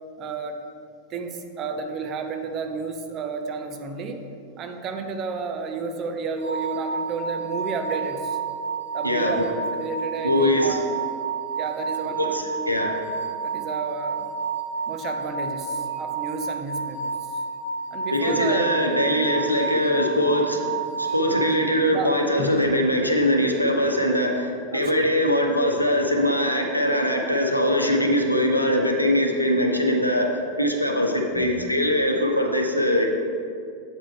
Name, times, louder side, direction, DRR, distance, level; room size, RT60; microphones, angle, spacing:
voice 1, 0.2-0.6 1.1-4.3 4.6-8.4 8.9-11.0 11.6-12.6 13.4-14.3 14.9-17.4 17.9-18.7 21.9-22.6 24.7-25.1 31.3-31.6, right 4 dB, 30° right, 5 dB, 0.6 m, -32 dB
sound 1, 6.4-21.6, right 5 dB, 90° right, 1.3 m, -30 dB
voice 2, 9.0-9.4 10.2-10.8 12.2-13.0 18.1-20.7 21.0-30.3 30.6-33.1, left 1 dB, 90° left, 2 dB, 0.7 m, -22 dB
8.1 x 3.8 x 4.5 m, 2.4 s
figure-of-eight pair, 90°, 0 cm